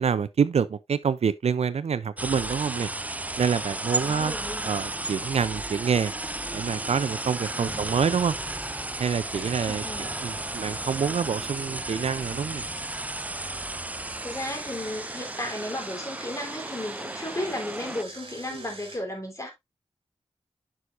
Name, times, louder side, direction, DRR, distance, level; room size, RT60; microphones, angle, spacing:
voice 1, 0.0-2.9 3.4-4.3 4.6-6.1 6.5-8.3 9.0-9.8 10.2-12.6 18.5-18.6, right 6 dB, 75° right, 0.5 m, -26 dB
sound 1, 2.2-18.0, right 2 dB, 15° right, 0.4 m, -34 dB
voice 2, 4.0-4.7 7.6-7.9 9.7-10.1 14.2-19.5, left 1 dB, 30° left, 3.5 m, -34 dB
Engine, 6.8-13.6 14.1-19.0, right 3 dB, 60° right, 3.4 m, -48 dB
9.9 x 6.3 x 2.5 m
wide cardioid pair, 80°, 11 cm